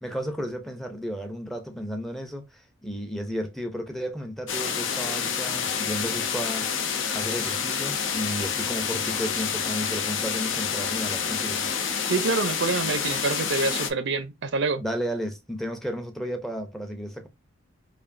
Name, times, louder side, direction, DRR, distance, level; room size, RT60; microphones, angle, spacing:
voice 1, 0.0-6.7 7.1-11.7 14.8-17.3, equal, ahead, 0.6 m, -33 dB
sound 1, 4.5-13.9, left 6 dB, 65° left, 0.7 m, -28 dB
voice 2, 12.1-14.8, right 4 dB, 60° right, 0.6 m, -26 dB
4.9 x 2.6 x 2.6 m
head